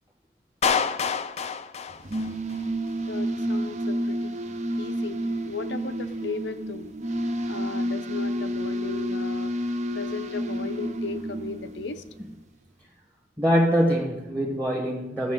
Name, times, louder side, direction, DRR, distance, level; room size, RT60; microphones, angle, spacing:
Clapping, 0.6-2.6, left 6 dB, 35° left, 0.4 m, -27 dB
sound 1, 1.9-12.3, equal, 40° right, 0.6 m, -30 dB
voice 1, 3.1-4.4 4.8-5.2 5.4-6.9 7.5-9.5 9.9-12.0, left 4 dB, 70° left, 0.7 m, -36 dB
voice 2, 13.4-15.3, equal, 10° right, 1.2 m, -23 dB
15.0 x 7.1 x 3.8 m
head